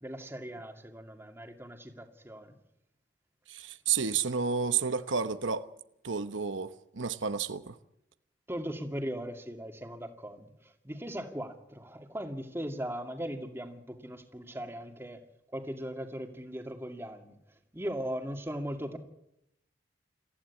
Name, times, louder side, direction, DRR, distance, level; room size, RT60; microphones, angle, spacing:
voice 1, 0.0-2.5 8.5-15.2 15.5-17.3 17.7-19.0, equal, 15° right, 2.3 m, -39 dB
voice 2, 3.5-5.7 6.0-7.8, right 6 dB, 90° right, 1.0 m, -31 dB
27.0 x 15.0 x 8.4 m
head